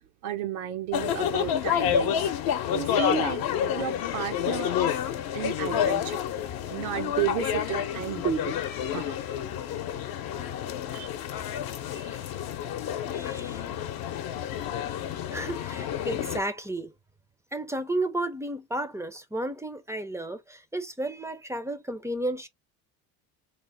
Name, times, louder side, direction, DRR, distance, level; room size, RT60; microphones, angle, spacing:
voice 1, 0.2-2.3 2.7-3.4 3.7-5.0 5.3-6.2 6.7-8.6 8.9-9.2 10.9-11.1, right 10 dB, 90° right, 0.8 m, -32 dB
sound 1, 0.9-16.4, left 9 dB, 55° left, 0.8 m, -29 dB
voice 2, 11.9-12.3 13.1-13.7 15.3-16.9 17.5-22.5, right 1 dB, 5° right, 0.5 m, -33 dB
3.7 x 2.1 x 3.3 m
hypercardioid pair, 80°, 42 cm